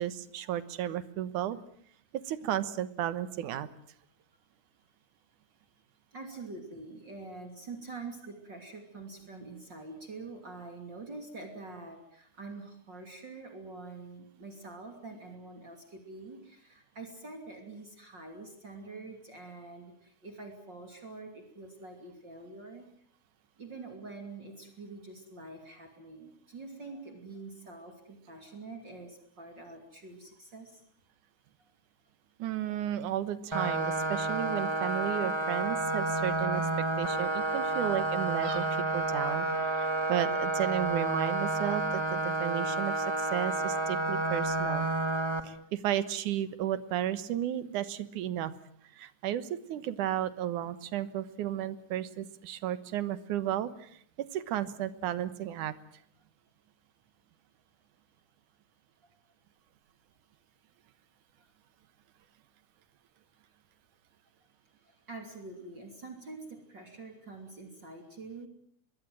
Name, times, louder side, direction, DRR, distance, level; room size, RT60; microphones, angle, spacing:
voice 1, 0.0-1.6 2.1-3.7 32.4-44.9 45.4-48.5 49.0-55.7, right 11 dB, 85° right, 14 dB, 2.7 m, -33 dB
voice 2, 6.1-22.9 23.6-30.8 65.1-68.5, right 3 dB, 35° right, 4 dB, 3.3 m, -46 dB
sound 1, 33.5-45.4, right 2 dB, 15° right, 1.1 m, -30 dB
24.5 x 21.5 x 7.6 m, 0.64 s
omnidirectional pair, 3.5 m